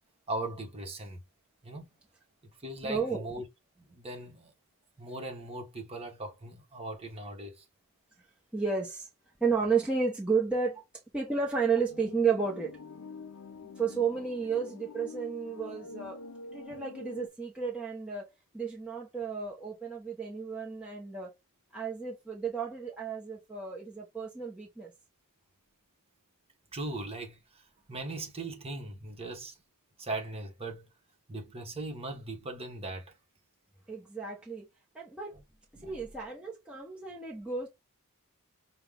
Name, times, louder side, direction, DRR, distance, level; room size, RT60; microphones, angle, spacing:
voice 1, 0.3-1.2 1.6-1.9 2.6-3.4 3.8-4.5 5.0-7.6 26.7-29.6 30.0-30.9 31.3-33.1 35.3-35.4 35.7-36.0, right 2 dB, 25° right, 1.2 m, -39 dB
voice 2, 2.8-3.2 8.5-9.1 9.4-10.8 11.1-12.7 13.8-16.2 16.5-18.3 18.5-21.3 21.7-24.9 33.9-34.6 34.9-35.3 35.8-37.7, right 5 dB, 5° right, 0.9 m, -32 dB
sound 1, 11.9-17.3, left 3 dB, 85° left, 0.6 m, -46 dB
5.6 x 2.2 x 3.5 m
head